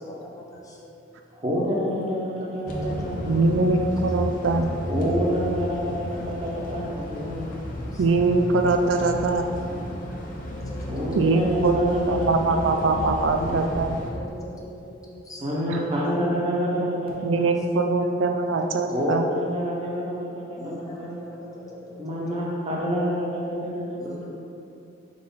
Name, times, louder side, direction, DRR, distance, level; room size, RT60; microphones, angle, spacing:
voice 1, 0.0-1.4 2.4-2.9 3.6-3.7 4.1-4.2 4.5-4.6 5.1-5.2 6.1-6.7 7.3-8.1 9.7-11.2 13.4-15.6 17.3-17.5 17.9-19.0 20.6-22.4 24.0-24.3, equal, 20° left, -3 dB, 0.8 m, -43 dB
voice 2, 1.3-3.8 4.9-7.5 10.9-12.3 13.0-13.6 15.4-17.5 18.9-21.1 22.0-24.3, equal, 30° right, -5 dB, 1.2 m, -27 dB
sound 1, 2.7-14.1, left 1 dB, 45° left, 0.9 m, -33 dB
voice 3, 3.2-4.8 8.0-9.4 11.2-14.0 17.2-19.3, right 3 dB, 75° right, 5 dB, 0.4 m, -22 dB
4.8 x 4.0 x 5.7 m, 2.6 s
head